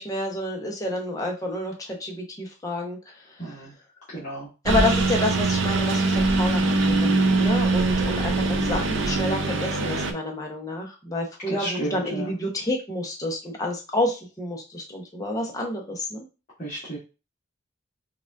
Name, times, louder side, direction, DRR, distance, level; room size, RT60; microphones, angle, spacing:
voice 1, 0.0-3.6 4.6-16.3, left 1 dB, 15° left, 0 dB, 0.8 m, -29 dB
voice 2, 3.4-3.7 4.1-4.5 11.6-12.3 16.6-17.0, right 1 dB, 40° left, -9 dB, 1.3 m, -32 dB
Engine, 4.7-10.1, right 3 dB, 65° right, 0.5 m, -22 dB
4.8 x 2.4 x 2.4 m, 0.30 s
head